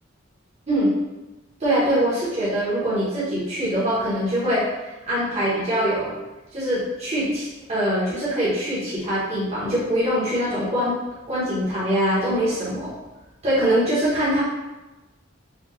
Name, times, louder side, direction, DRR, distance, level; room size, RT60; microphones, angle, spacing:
voice 1, 1.6-4.7 5.1-6.1 6.5-11.0 11.3-12.9 13.4-14.4, equal, 35° right, -10 dB, 1.0 m, -23 dB
4.2 x 2.4 x 3.0 m, 1.1 s
head